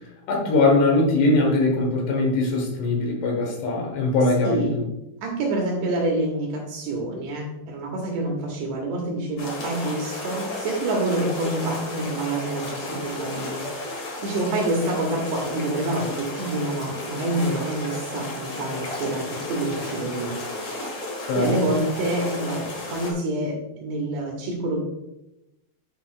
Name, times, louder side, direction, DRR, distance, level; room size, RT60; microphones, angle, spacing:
voice 1, 0.3-4.9 21.3-21.5, left 2 dB, 70° left, 0 dB, 3.1 m, -21 dB
voice 2, 4.4-4.8 5.2-13.8 14.2-20.4 21.4-24.8, right 2 dB, 75° right, 0 dB, 2.9 m, -27 dB
sound 1, 9.4-23.1, left 1 dB, 85° left, 1.2 m, -33 dB
10.5 x 4.8 x 2.4 m, 0.90 s
omnidirectional pair, 5.4 m